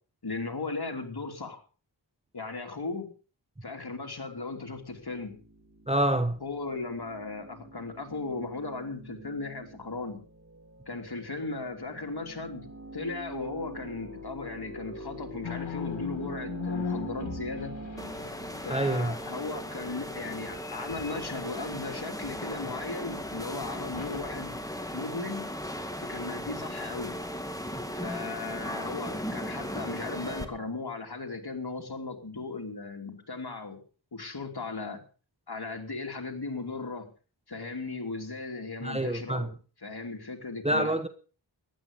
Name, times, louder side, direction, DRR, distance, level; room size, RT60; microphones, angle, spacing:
voice 1, 0.2-1.6 2.3-3.1 3.6-5.4 6.4-10.2 10.9-17.8 18.6-24.6 24.9-25.5 26.0-27.2 27.9-33.8 34.1-35.0 35.5-37.1 37.5-39.5 39.8-41.0, left 3 dB, 55° left, 3.2 m, -37 dB
sound 1, 4.7-18.2, right 1 dB, 35° right, 3.1 m, -45 dB
voice 2, 5.9-6.4 18.7-19.1 38.8-39.5 40.6-41.1, right 1 dB, 15° right, 1.1 m, -26 dB
sound 2, 15.4-19.0 20.3-22.6 23.2-23.4 23.9-24.2, left 6 dB, 85° left, 1.8 m, -39 dB
sound 3, 18.0-30.4, equal, 10° left, 2.1 m, -37 dB
15.0 x 11.5 x 5.3 m
wide cardioid pair, 60°, 45 cm